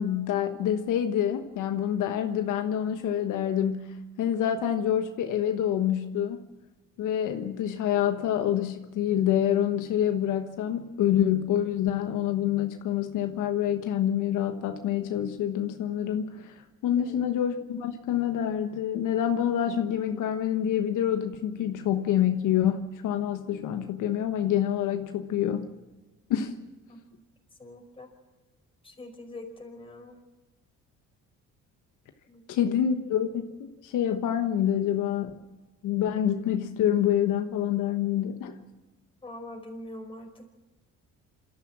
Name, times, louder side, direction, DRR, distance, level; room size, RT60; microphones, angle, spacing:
voice 1, 0.0-6.4 7.0-16.6 16.8-25.7 26.3-26.6 32.5-33.5 33.8-35.3 35.8-38.6, left 10 dB, 85° left, 6 dB, 1.3 m, -27 dB
voice 2, 27.6-28.1 28.8-30.2 32.3-32.7 39.2-40.4, left 1 dB, 15° left, 2 dB, 5.0 m, -43 dB
27.5 x 13.5 x 7.4 m, 1.1 s
cardioid pair, 110°, 30 cm